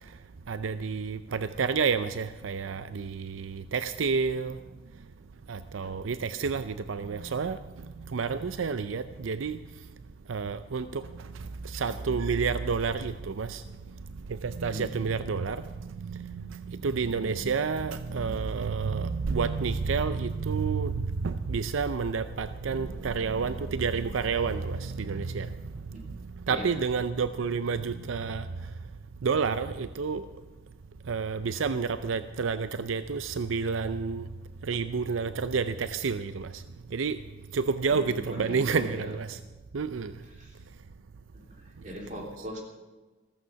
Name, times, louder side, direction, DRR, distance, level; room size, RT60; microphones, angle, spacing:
voice 1, 0.5-4.6 5.5-7.6 8.1-9.6 10.3-11.0 11.6-13.6 14.4-15.6 16.1-25.5 26.5-28.4 29.2-30.2 31.1-34.2 34.7-36.5 36.9-37.2 37.5-39.4 39.7-40.1, right 5 dB, 85° right, 0.5 m, -29 dB
voice 2, 14.7-15.1 25.9-26.0 26.5-26.7 37.9-39.1 40.4-40.6 41.3-42.6, equal, 40° right, 3.3 m, -40 dB
14.5 x 14.5 x 5.7 m
head